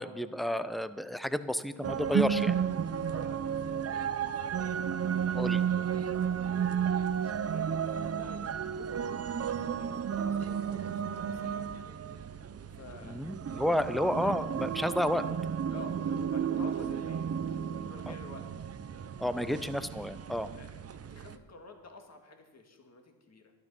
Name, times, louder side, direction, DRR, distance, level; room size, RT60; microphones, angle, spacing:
voice 1, 0.0-2.6 5.3-5.6 13.0-15.3 18.1-18.2 19.2-20.5, equal, ahead, 13 dB, 0.7 m, -31 dB
sound 1, 1.8-21.4, right 7 dB, 35° right, 0.7 m, -33 dB
voice 2, 2.8-4.7 5.7-6.0 6.6-11.6 12.8-13.2 13.5-13.8 15.7-18.5 19.2-19.6 20.6-20.8 21.1-23.5, left 3 dB, 35° left, 4 dB, 2.0 m, -51 dB
12.0 x 12.0 x 5.6 m, 1.2 s
cardioid pair, 75°, 43 cm